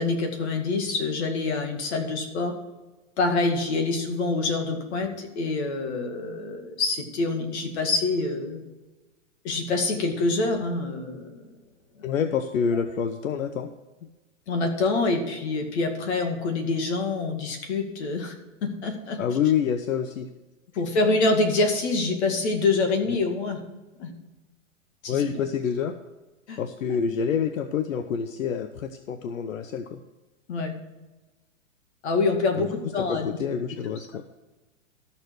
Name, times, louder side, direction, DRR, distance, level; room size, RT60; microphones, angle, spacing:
voice 1, 0.0-2.5 3.2-8.6 9.4-11.5 14.5-18.3 18.6-19.2 20.7-23.6 24.0-24.1 25.0-25.4 26.5-26.6 30.5-30.7 32.0-33.3, left 3 dB, 55° left, 4 dB, 2.3 m, -26 dB
voice 2, 12.0-13.7 19.2-20.3 25.1-25.9 26.6-30.0 32.5-32.7 33.1-34.2, left 7 dB, 85° left, 9 dB, 0.9 m, -27 dB
13.0 x 7.1 x 4.8 m, 1.1 s
hypercardioid pair, 150°, 39 cm